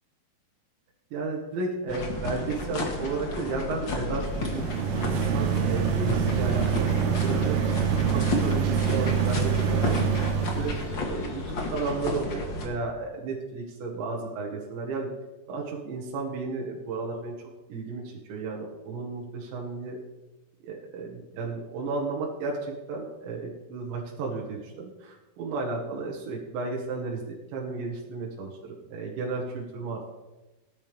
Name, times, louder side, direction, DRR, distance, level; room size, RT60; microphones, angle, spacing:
voice 1, 1.1-10.0 10.4-15.1 15.5-17.3 17.7-20.0 20.6-30.1, right 3 dB, 85° right, -2 dB, 4.1 m, -33 dB
sound 1, 1.9-12.7, left 2 dB, 55° left, 1.3 m, -32 dB
sound 2, 4.3-10.9, right 7 dB, 70° right, 2.8 m, -26 dB
18.5 x 10.5 x 3.5 m, 1.1 s
omnidirectional pair, 5.0 m